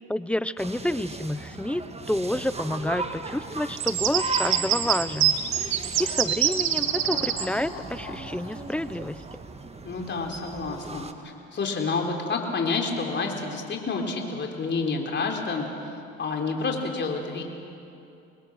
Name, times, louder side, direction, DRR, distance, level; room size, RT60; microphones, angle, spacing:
voice 1, 0.0-5.4 6.0-9.2, left 1 dB, 5° left, 16 dB, 0.6 m, -29 dB
sound 1, 0.6-11.1, right 3 dB, 20° right, 1.5 m, -37 dB
sound 2, 3.8-7.4, right 11 dB, 70° right, 1.6 m, -24 dB
sound 3, 6.7-10.1 10.4-10.5, left 3 dB, 90° left, 5.3 m, -43 dB
voice 2, 9.8-11.1 11.5-15.9 16.2-17.4, left 4 dB, 40° left, 1 dB, 3.7 m, -29 dB
25.5 x 20.5 x 6.4 m, 2.7 s
supercardioid pair, 85°, 29 cm